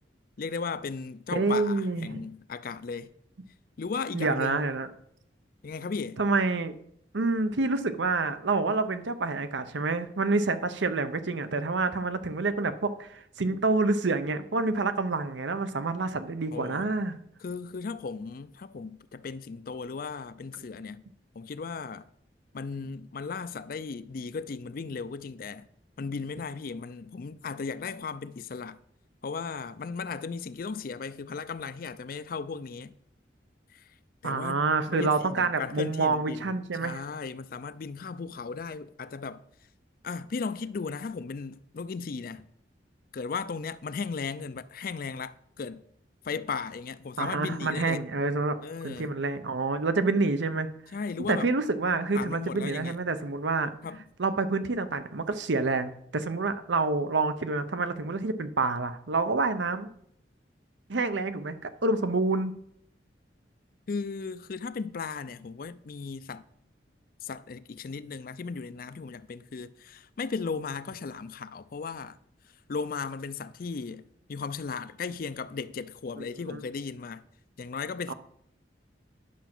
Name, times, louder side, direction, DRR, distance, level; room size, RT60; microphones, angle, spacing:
voice 1, 0.4-3.1 3.8-4.6 5.6-6.2 16.5-16.9 17.4-21.0 21.4-22.1 22.5-25.6 26.0-28.8 29.2-32.9 33.7-33.8 34.2-34.6 34.9-36.5 36.8-39.4 40.0-42.5 43.1-45.8 46.2-48.0 48.6-49.1 50.9-51.5 52.1-53.0 53.8-54.0 63.9-66.4 67.2-72.2 72.7-74.0 74.3-77.2 77.6-78.1, left 5 dB, 50° left, 0.4 m, -36 dB
voice 2, 1.3-2.2 4.1-4.9 6.2-6.8 7.1-17.1 34.2-37.0 47.2-48.6 48.8-50.7 51.3-53.7 54.2-59.9 60.9-62.5 76.2-76.3 76.5-76.6 78.1-78.2, right 3 dB, 80° right, 0.7 m, -28 dB
10.0 x 5.8 x 6.0 m
head